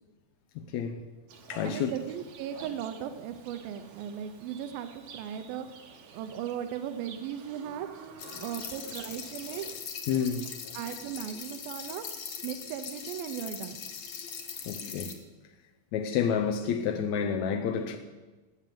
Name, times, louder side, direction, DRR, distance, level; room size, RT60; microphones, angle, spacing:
voice 1, 0.5-1.0 1.5-1.9 10.1-10.8 14.6-15.2 15.9-18.0, left 7 dB, 75° left, 1.7 m, -30 dB
Livestock farm animals working animals, 1.3-9.8, right 6 dB, 60° right, 1.5 m, -50 dB
voice 2, 1.6-5.7 6.1-7.9 8.4-9.8 10.7-12.1 12.4-13.8, right 9 dB, 85° right, 2.6 m, -37 dB
sound 1, 8.2-15.1, left 7 dB, 55° left, 2.4 m, -41 dB
16.0 x 7.4 x 9.2 m
omnidirectional pair, 4.2 m